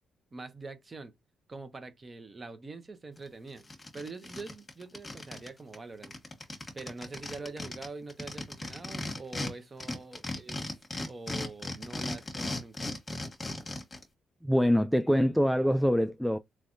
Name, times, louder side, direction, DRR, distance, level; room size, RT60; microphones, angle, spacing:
voice 1, 0.3-1.1 1.5-3.6 3.9-6.1 6.7-10.6 11.1-12.9, right 3 dB, 30° right, 0.8 m, -44 dB
sound 1, 3.2-3.3 3.6-5.5 5.7-5.8 6.0-9.5 9.8-14.0, left 2 dB, 25° left, 1.3 m, -37 dB
voice 2, 14.4-16.4, equal, ahead, 0.3 m, -24 dB
3.4 x 3.0 x 2.6 m
cardioid pair, 90°, 0 cm